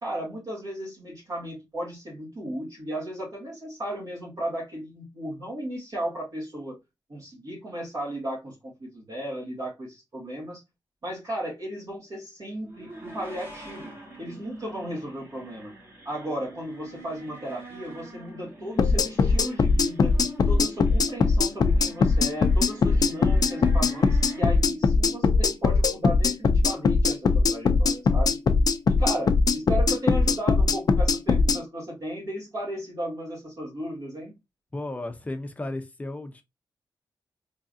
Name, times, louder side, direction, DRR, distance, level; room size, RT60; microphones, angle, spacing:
voice 1, 0.0-6.8 7.1-10.6 11.0-13.9 14.2-15.7 16.0-20.2 20.5-28.4 28.9-34.3, right 1 dB, 50° right, 2.1 m, -35 dB
sound 1, 12.6-24.4, right 1 dB, 30° right, 1.6 m, -44 dB
sound 2, 18.8-31.6, left 4 dB, 55° left, 0.5 m, -21 dB
voice 2, 34.7-36.4, left 2 dB, 20° left, 0.7 m, -34 dB
3.7 x 3.3 x 2.6 m
wide cardioid pair, 115°, 8 cm